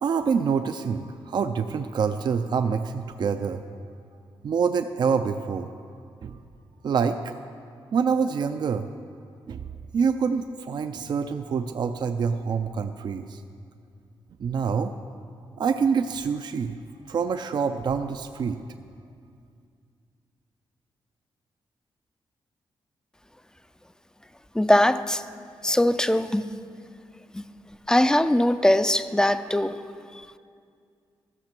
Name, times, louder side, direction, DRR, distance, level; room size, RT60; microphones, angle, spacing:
voice 1, 0.0-3.6 4.4-5.7 6.2-6.4 6.8-7.3 7.9-8.9 9.5-9.7 9.9-13.4 14.4-14.9 15.6-16.8 17.1-18.6, right 6 dB, 55° right, 8 dB, 0.4 m, -26 dB
voice 2, 24.5-25.2 25.6-26.4 27.3-27.4 27.9-29.8, left 1 dB, 5° left, 12 dB, 0.4 m, -21 dB
13.5 x 6.6 x 5.9 m, 2.3 s
cardioid pair, 85°, 9 cm